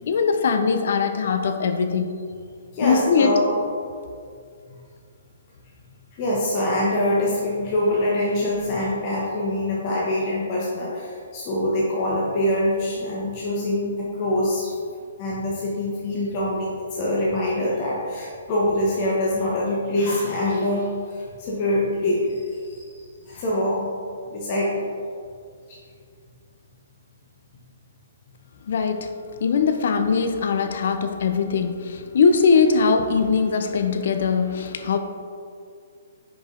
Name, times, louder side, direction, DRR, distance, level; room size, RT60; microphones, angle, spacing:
voice 1, 0.1-2.1 2.8-3.3 28.7-29.1 29.4-35.0, left 5 dB, 60° left, 7 dB, 0.5 m, -21 dB
voice 2, 2.7-3.6 6.1-14.7 15.2-22.9 23.2-23.9 24.3-24.8 25.7-25.8, left 1 dB, 40° left, -4 dB, 1.0 m, -24 dB
5.3 x 5.1 x 3.7 m, 2.3 s
figure-of-eight pair, 130°, 0 cm